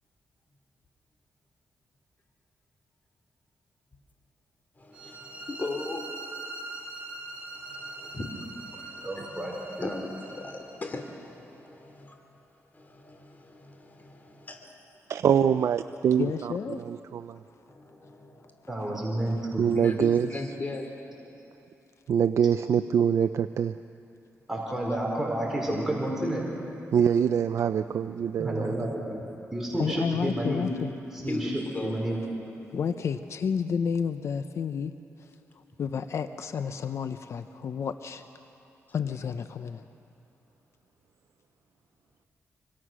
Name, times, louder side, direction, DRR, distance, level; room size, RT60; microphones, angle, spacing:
voice 1, 4.8-6.1 7.3-12.2 12.7-14.7 17.7-18.5 19.7-20.9 29.2-29.3 31.3-32.2 38.9-39.3, left 2 dB, 35° left, 3 dB, 2.8 m, -39 dB
sound 1, 4.9-10.8, right 2 dB, 25° right, 7.0 m, -42 dB
voice 2, 9.0-9.9 18.7-19.6 24.5-26.4 28.4-29.2 29.5-30.7 31.1-31.5 31.8-32.2, right 1 dB, 5° right, -4 dB, 4.8 m, -30 dB
voice 3, 15.1-17.4 19.6-20.5 22.1-23.7 26.9-28.9 31.3-31.6, right 8 dB, 65° right, 9 dB, 0.5 m, -25 dB
voice 4, 16.1-16.8 19.0-19.5 24.9-25.2 29.8-30.9 31.3-31.4 32.7-34.9 35.8-38.2 38.9-39.8, left 6 dB, 60° left, 10 dB, 0.8 m, -31 dB
25.5 x 25.0 x 6.3 m, 2.9 s
cardioid pair, 95°, 5 cm